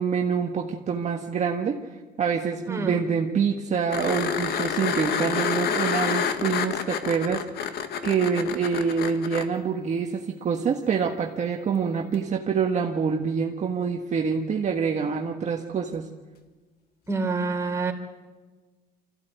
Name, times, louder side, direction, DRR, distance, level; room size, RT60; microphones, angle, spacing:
voice 1, 0.0-1.8 2.2-7.7 8.0-16.1, right 6 dB, 45° right, 1 dB, 1.6 m, -26 dB
voice 2, 2.7-3.0 17.1-17.9, right 3 dB, 15° right, 2 dB, 3.7 m, -27 dB
sound 1, 3.9-9.4 12.1-12.2, left 7 dB, 70° left, 1.9 m, -28 dB
25.0 x 15.5 x 9.3 m, 1.3 s
cardioid pair, 110°, 17 cm